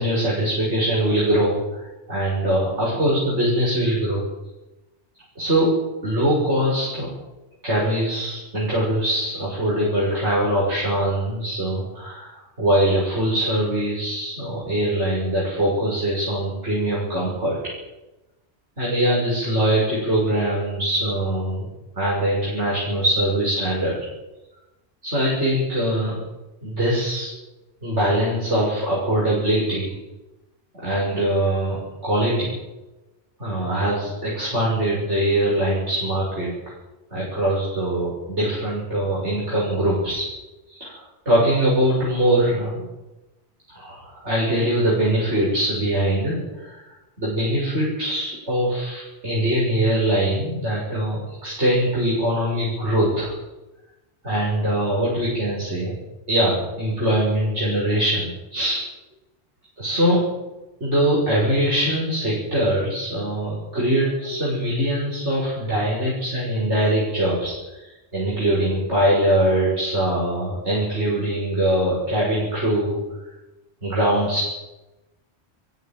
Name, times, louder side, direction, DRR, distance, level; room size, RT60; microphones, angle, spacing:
voice 1, 0.0-1.6 2.1-4.2 5.4-5.8 6.0-7.1 7.6-17.6 18.8-21.6 22.0-24.0 25.0-26.2 26.6-27.3 27.8-30.0 30.8-32.5 33.4-36.5 37.1-40.3 40.7-42.8 43.8-46.8 47.2-53.4 54.2-55.9 56.3-58.8 59.8-60.3 60.8-73.0 73.8-74.5, right 1 dB, 85° right, -5 dB, 7.2 m, -22 dB
20.5 x 16.5 x 9.4 m, 1.0 s
omnidirectional pair, 1.2 m